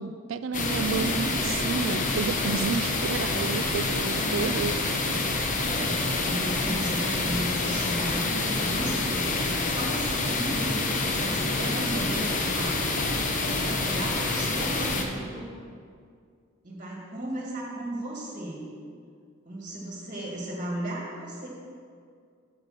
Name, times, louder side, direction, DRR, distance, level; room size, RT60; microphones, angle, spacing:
voice 1, 0.0-4.8, right 5 dB, 65° right, 13 dB, 0.3 m, -30 dB
sound 1, 0.5-15.0, left 3 dB, 40° left, 0.7 m, -27 dB
voice 2, 0.8-1.5 4.1-4.7 5.6-12.8 13.5-15.5 16.6-18.7 19.5-21.5, right 1 dB, 40° right, -3 dB, 1.8 m, -35 dB
6.7 x 5.2 x 6.5 m, 2.2 s
head